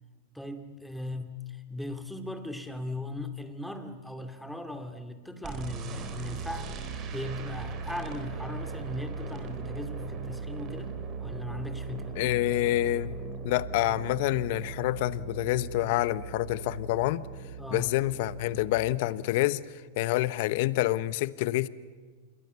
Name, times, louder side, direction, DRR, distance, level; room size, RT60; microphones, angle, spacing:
voice 1, 0.3-12.2 17.6-17.9, left 1 dB, ahead, 7 dB, 2.5 m, -38 dB
sound 1, 5.4-18.8, right 5 dB, 35° right, 3.9 m, -38 dB
voice 2, 12.2-13.2 13.4-17.3 17.7-19.6 20.0-21.7, left 16 dB, 60° left, 16 dB, 0.9 m, -27 dB
27.5 x 22.5 x 7.0 m, 1.5 s
hypercardioid pair, 115°, 0 cm